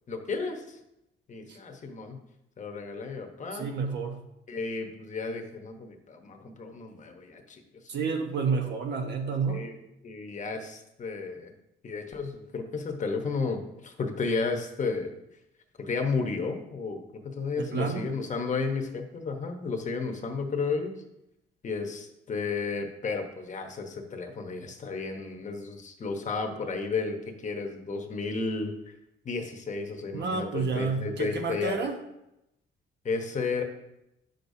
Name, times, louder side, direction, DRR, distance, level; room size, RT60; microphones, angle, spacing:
voice 1, 0.1-0.8 1.3-2.2 2.6-3.7 4.5-7.6 9.5-9.8 10.0-11.5 11.8-15.1 15.8-17.0 17.2-20.9 21.6-28.7 29.2-31.8 33.0-33.6, left 4 dB, 35° left, 4 dB, 1.1 m, -33 dB
voice 2, 3.5-4.2 7.9-9.6 17.6-18.1 30.1-32.0, right 5 dB, 55° right, 3 dB, 1.1 m, -30 dB
9.7 x 6.5 x 2.7 m, 0.87 s
cardioid pair, 130°, 21 cm